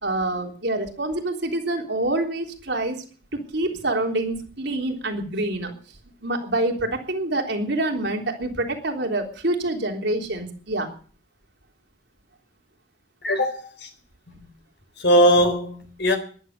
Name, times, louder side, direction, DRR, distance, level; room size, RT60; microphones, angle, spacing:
voice 1, 0.0-3.0 3.3-5.7 6.2-10.9, right 2 dB, 65° right, 3.5 m, -26 dB
voice 2, 13.2-13.9 14.3-14.4 15.0-16.2, equal, 65° left, 4.2 m, -20 dB
14.5 x 11.5 x 6.7 m
head